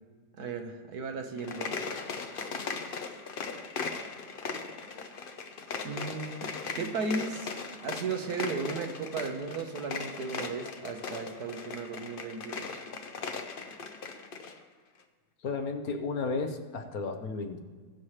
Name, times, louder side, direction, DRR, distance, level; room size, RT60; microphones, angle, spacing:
voice 1, 0.4-1.8 5.8-7.5 7.8-12.8, right 4 dB, 75° right, 5 dB, 1.5 m, -35 dB
sound 1, 1.3-14.6, left 5 dB, 45° left, 0.7 m, -38 dB
voice 2, 15.4-17.6, left 4 dB, 65° left, 5 dB, 1.4 m, -33 dB
20.5 x 7.3 x 3.2 m, 1.5 s
omnidirectional pair, 1.7 m